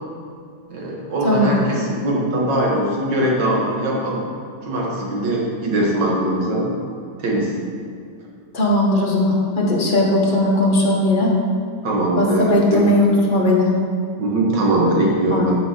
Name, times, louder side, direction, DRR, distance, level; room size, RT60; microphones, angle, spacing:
voice 1, 0.7-4.2 4.6-6.7 7.2-7.5 11.8-12.9 14.2-15.6, right 1 dB, 80° right, -3 dB, 2.0 m, -21 dB
voice 2, 8.5-11.3 12.2-13.7 15.3-15.5, left 1 dB, 30° left, -3 dB, 1.2 m, -18 dB
12.0 x 4.9 x 3.8 m, 2.3 s
omnidirectional pair, 1.9 m